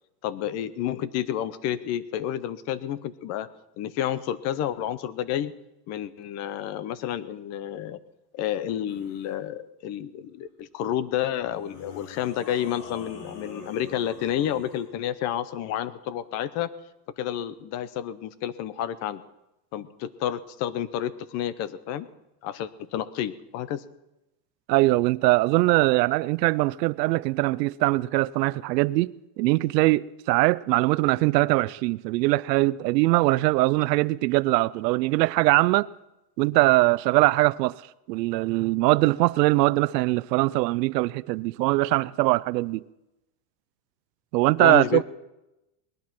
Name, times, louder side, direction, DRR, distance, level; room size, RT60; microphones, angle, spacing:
voice 1, 0.2-3.5 3.8-5.5 5.9-8.0 8.3-16.7 17.2-19.2 19.7-22.1 22.4-23.8 44.6-45.0, left 11 dB, 35° left, 0.7 m, -30 dB
sound 1, 8.9-9.4 11.5-14.9, left 3 dB, 70° left, 3.8 m, -45 dB
voice 2, 24.7-35.9 36.4-37.7 38.1-42.8 44.3-45.0, right 20 dB, 85° right, 0.6 m, -22 dB
19.5 x 11.5 x 6.0 m
supercardioid pair, 160°, 49 cm